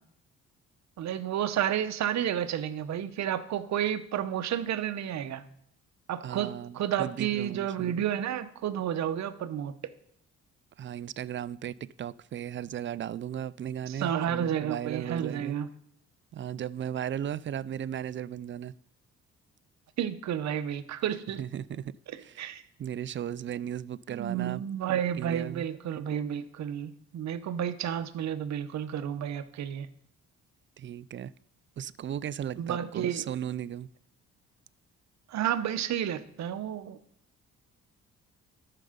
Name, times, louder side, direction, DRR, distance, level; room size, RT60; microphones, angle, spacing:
voice 1, 1.0-5.4 6.1-9.7 13.9-15.7 20.0-21.4 22.1-22.6 24.1-29.9 32.6-33.2 35.3-37.0, right 10 dB, 65° right, 0.9 m, -31 dB
voice 2, 6.2-8.0 10.8-15.5 16.3-18.7 21.4-21.9 22.2-22.4 22.8-24.6 25.1-25.7 30.8-31.3 31.8-33.9, right 10 dB, 40° right, 0.4 m, -36 dB
12.5 x 6.7 x 5.1 m
cardioid pair, 90°, 30 cm